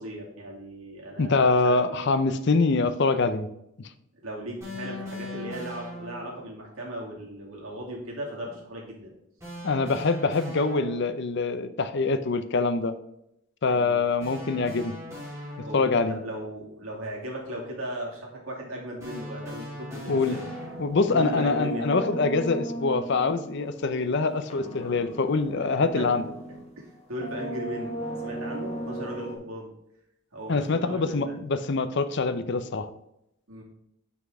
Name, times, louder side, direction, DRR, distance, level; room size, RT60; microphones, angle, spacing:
voice 1, 0.0-1.8 4.2-9.1 13.7-14.0 15.6-20.4 21.1-22.0 26.0-26.1 26.8-29.7 30.3-31.3 33.5-33.6, right 1 dB, 75° right, -3 dB, 2.7 m, -37 dB
voice 2, 1.2-3.5 3.8-3.9 9.6-12.9 13.6-15.0 15.7-16.2 20.1-20.4 20.8-26.2 30.5-32.9, left 3 dB, 50° left, 11 dB, 0.6 m, -24 dB
sound 1, 4.6-6.4 9.4-11.3 14.2-16.1 19.0-21.2, left 1 dB, 15° right, 3.2 m, -40 dB
sound 2, 20.1-26.8 27.1-29.4, right 1 dB, 30° left, 1.5 m, -37 dB
6.0 x 5.8 x 4.8 m, 0.80 s
head